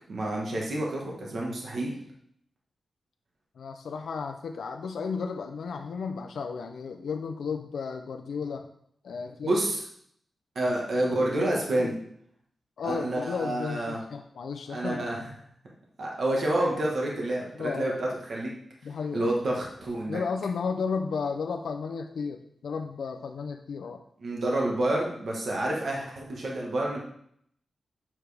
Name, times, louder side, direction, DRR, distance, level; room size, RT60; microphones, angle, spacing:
voice 1, 0.1-1.9 9.4-9.8 10.5-11.9 12.8-14.0 14.7-15.3 16.0-18.5 19.1-20.2 24.2-27.0, right 1 dB, 55° right, -2 dB, 1.4 m, -28 dB
voice 2, 3.6-8.7 9.0-9.5 10.6-11.0 11.8-12.0 12.8-15.1 17.5-18.0 18.8-19.3 20.1-24.0, left 5 dB, 90° left, 5 dB, 0.4 m, -33 dB
7.0 x 6.0 x 3.4 m, 0.69 s
wide cardioid pair, 150°, 0 cm